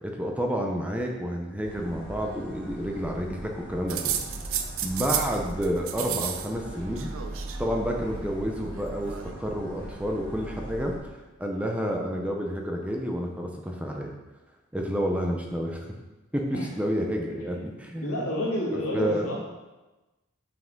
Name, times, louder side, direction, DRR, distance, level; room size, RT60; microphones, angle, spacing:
voice 1, 0.0-4.3 4.8-7.1 7.6-9.1 9.4-10.9 11.4-14.1 14.7-15.9 16.3-18.2 18.7-19.3, equal, 5° right, 1 dB, 0.7 m, -30 dB
sound 1, 1.6-11.0, right 1 dB, 10° left, 2.1 m, -40 dB
sound 2, 3.9-5.4 5.6-6.5 6.7-7.6 8.6-9.3, right 9 dB, 65° right, 0.6 m, -32 dB
voice 2, 17.5-19.4, left 1 dB, 75° left, -4 dB, 2.2 m, -30 dB
7.4 x 5.8 x 3.9 m, 1.1 s
head